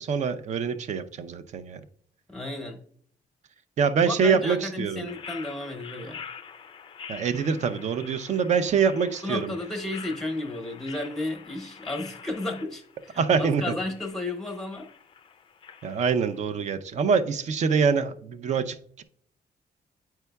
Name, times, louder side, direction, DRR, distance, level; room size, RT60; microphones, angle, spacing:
voice 1, 0.0-1.8 3.8-5.1 7.1-9.5 13.2-13.6 15.8-19.0, right 6 dB, 45° right, 12 dB, 0.4 m, -25 dB
voice 2, 2.3-2.8 4.0-6.2 9.2-14.9, left 2 dB, ahead, 2 dB, 1.0 m, -33 dB
sound 1, 5.1-16.4, left 7 dB, 30° left, 0.4 m, -46 dB
9.3 x 4.5 x 2.2 m, 0.62 s
wide cardioid pair, 180°, 17 cm